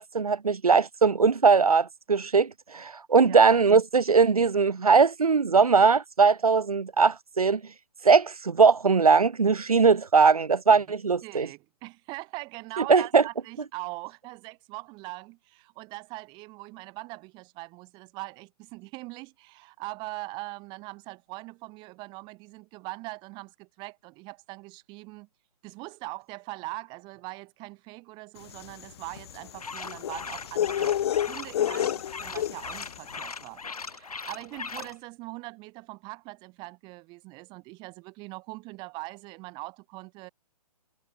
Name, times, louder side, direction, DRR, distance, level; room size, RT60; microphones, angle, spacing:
voice 1, 0.0-7.6 8.0-11.5 12.8-13.2, right 5 dB, 60° right, 4.6 m, -20 dB
voice 2, 3.2-3.6 10.7-10.8 11.2-25.3 25.6-31.0 31.3-40.3, right 24 dB, 20° right, 6.1 m, -41 dB
sound 1, 28.5-33.0, left 11 dB, 40° left, 2.6 m, -30 dB
sound 2, 29.6-34.9, left 5 dB, 60° left, 8.0 m, -39 dB
figure-of-eight pair, 130°, 21 cm